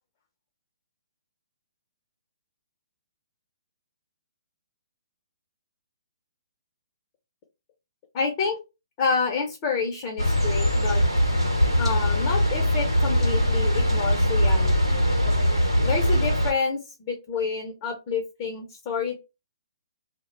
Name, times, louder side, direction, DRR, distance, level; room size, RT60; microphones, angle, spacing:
voice 1, 8.1-8.6 9.0-11.0 11.8-14.9 15.8-19.2, left 5 dB, 30° left, 2 dB, 0.6 m, -28 dB
sound 1, 10.2-16.5, equal, 90° right, 1.0 m, -22 dB
2.1 x 2.0 x 3.1 m, 0.27 s
figure-of-eight pair, 125°, 3 cm